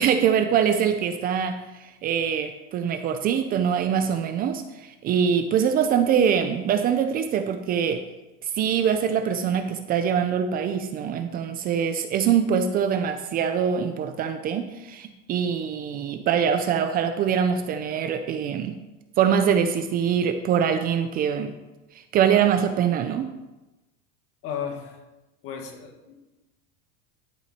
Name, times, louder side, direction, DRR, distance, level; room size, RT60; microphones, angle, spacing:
voice 1, 0.0-8.0 8.4-18.8 19.2-21.6 22.1-23.3, right 8 dB, 30° right, 8 dB, 0.5 m, -23 dB
voice 2, 24.4-25.0 25.4-26.1, left 7 dB, 50° left, 3 dB, 1.8 m, -34 dB
11.5 x 6.3 x 4.4 m, 1.0 s
supercardioid pair, 155°, 30 cm